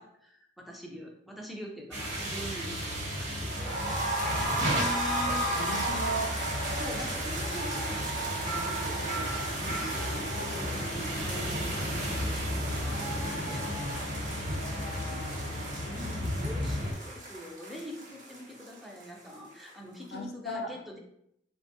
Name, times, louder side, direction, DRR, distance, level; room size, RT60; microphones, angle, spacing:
voice 1, 0.0-3.5 6.7-9.0 9.5-13.6 15.8-21.0, equal, ahead, -1 dB, 0.4 m, -44 dB
sound 1, 1.9-16.9, equal, 60° right, 1.0 m, -34 dB
sound 2, 3.5-19.3 19.6-19.7 20.0-20.1, right 1 dB, 45° right, 0.7 m, -35 dB
voice 2, 4.2-6.5 9.6-9.8 14.5-16.1 20.1-20.7, equal, 60° left, 3 dB, 0.5 m, -39 dB
3.3 x 2.2 x 2.6 m, 0.75 s
head